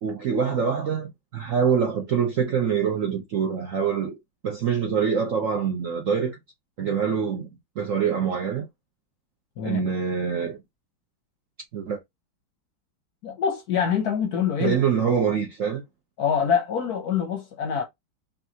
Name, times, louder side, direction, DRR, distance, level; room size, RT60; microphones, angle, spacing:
voice 1, 0.0-4.2 4.4-6.4 6.8-7.5 7.8-8.6 9.6-10.6 11.7-12.0 14.6-15.8, right 7 dB, 65° right, 0.8 m, -25 dB
voice 2, 13.2-14.8 16.2-17.8, left 7 dB, 65° left, 1.0 m, -25 dB
5.5 x 2.6 x 2.7 m
omnidirectional pair, 2.2 m